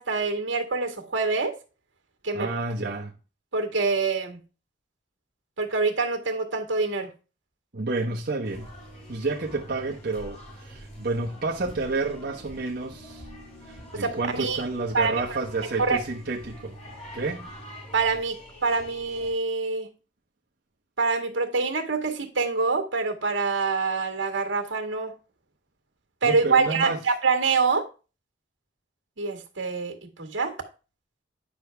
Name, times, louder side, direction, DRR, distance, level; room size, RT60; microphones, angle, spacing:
voice 1, 0.0-1.5 2.2-2.5 3.5-4.4 5.6-7.1 13.9-14.6 14.9-15.2 15.8-16.0 17.9-19.9 21.0-25.1 26.2-27.9 29.2-30.5, right 4 dB, 85° right, 1.9 m, -25 dB
voice 2, 2.3-3.1 7.7-8.7 9.1-13.3 13.6-16.8 17.1-17.5 26.2-27.0, right 3 dB, 55° right, 1.1 m, -30 dB
sound 1, 8.4-19.3, equal, 35° left, 2.8 m, -45 dB
9.7 x 6.3 x 3.5 m
head